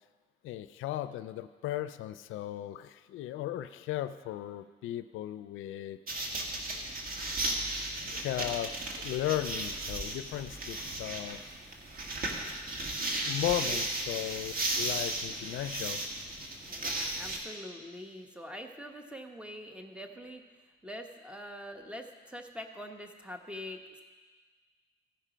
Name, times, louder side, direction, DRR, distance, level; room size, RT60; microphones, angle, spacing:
voice 1, 0.4-6.0 8.0-11.4 13.3-16.0, left 13 dB, 85° left, 12 dB, 0.4 m, -36 dB
sound 1, 6.1-17.4, right 2 dB, 45° right, 1.7 m, -35 dB
voice 2, 16.7-20.4 20.8-24.0, equal, 5° right, 4 dB, 1.0 m, -44 dB
15.5 x 5.5 x 5.0 m, 1.4 s
cardioid pair, 90°, 20 cm